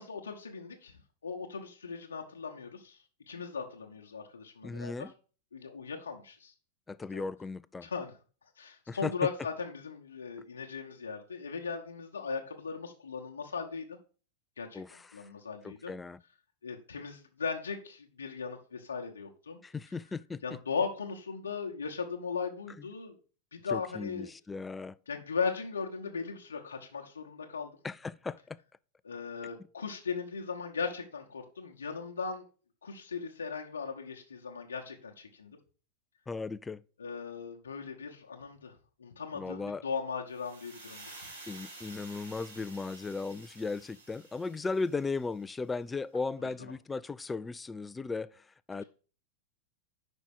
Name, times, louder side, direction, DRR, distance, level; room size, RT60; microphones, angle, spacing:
voice 1, 0.0-3.0 3.3-4.9 5.5-6.5 7.1-7.2 7.8-8.1 8.6-14.0 14.6-15.9 16.6-19.6 20.4-23.1 23.5-24.3 25.1-27.7 29.0-32.4 32.8-35.6 37.0-38.7 39.0-41.1, left 5 dB, 70° left, 0.9 m, -38 dB
voice 2, 4.6-5.1 6.9-7.9 8.9-9.1 14.7-15.3 15.6-16.2 19.6-20.4 23.7-25.0 27.8-28.6 36.3-36.8 39.3-39.8 41.5-48.8, left 4 dB, 10° left, 0.3 m, -37 dB
sound 1, 40.3-45.4, right 2 dB, 75° right, 1.9 m, -51 dB
5.4 x 5.0 x 6.3 m
figure-of-eight pair, 90°, 0 cm